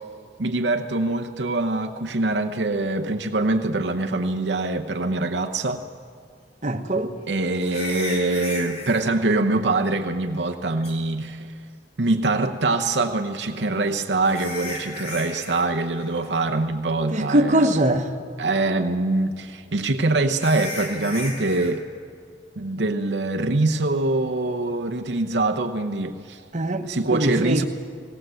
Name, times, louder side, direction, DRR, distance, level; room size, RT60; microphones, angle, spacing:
voice 1, 0.4-5.8 7.3-11.5 12.0-17.7 18.4-21.8 22.6-26.4 26.8-27.6, right 2 dB, 70° right, 0.9 m, -24 dB
sound 1, 5.7-5.8 7.6-9.0 10.8-10.9 13.5-15.7 15.9-16.3 16.7-16.8 17.4-17.5 20.3-21.7, left 1 dB, 35° left, 3.7 m, -35 dB
voice 2, 6.6-7.1 17.1-18.1 26.5-27.7, right 1 dB, 40° right, 1.2 m, -22 dB
19.5 x 18.0 x 7.8 m
head